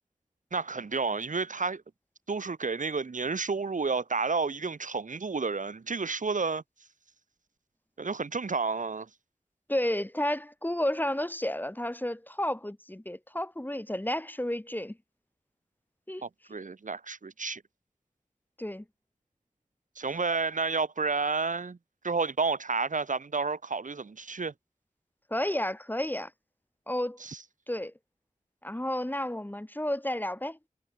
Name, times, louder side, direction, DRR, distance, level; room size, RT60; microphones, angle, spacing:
voice 1, 0.5-1.8 2.3-6.6 8.0-9.1 16.2-17.6 19.9-21.8 22.0-24.5 27.2-27.4, right 4 dB, 85° right, 1.4 m, -31 dB
voice 2, 9.7-15.0 16.1-16.2 18.6-18.8 25.3-26.3 26.9-27.2 27.7-27.9 28.6-30.6, left 1 dB, 15° left, 1.1 m, -31 dB
wide cardioid pair, 60°, 13 cm